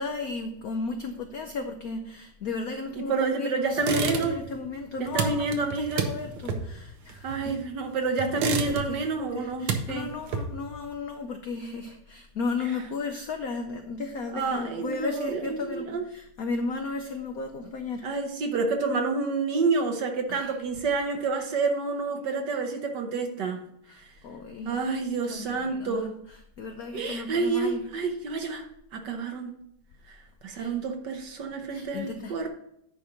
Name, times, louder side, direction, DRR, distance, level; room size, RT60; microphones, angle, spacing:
voice 1, 0.0-7.5 8.7-18.1 20.3-20.5 23.9-24.8 25.3-26.1 26.6-27.8 30.5-30.7 31.7-32.5, left 3 dB, 75° left, 5 dB, 0.8 m, -34 dB
voice 2, 3.1-4.4 5.0-6.1 7.2-10.1 14.3-16.1 18.0-23.6 23.9-24.1 24.6-26.2 26.9-29.6 30.1-32.5, right 4 dB, 60° right, 4 dB, 1.4 m, -29 dB
sound 1, 3.8-4.6 4.8-7.8 8.2-9.1 9.4-10.8, right 6 dB, 80° right, 1.8 m, -30 dB
9.9 x 4.4 x 5.0 m, 0.75 s
omnidirectional pair, 2.4 m